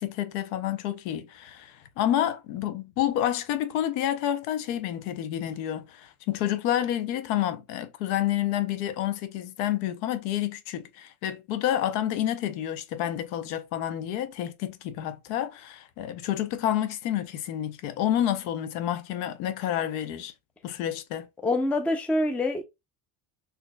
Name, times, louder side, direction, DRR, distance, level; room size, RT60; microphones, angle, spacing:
voice 1, 0.0-20.3 20.6-21.3, left 11 dB, 80° left, 0.7 m, -29 dB
voice 2, 21.4-22.6, left 2 dB, 5° left, 0.3 m, -25 dB
3.9 x 2.8 x 2.2 m
supercardioid pair, 100°, 49 cm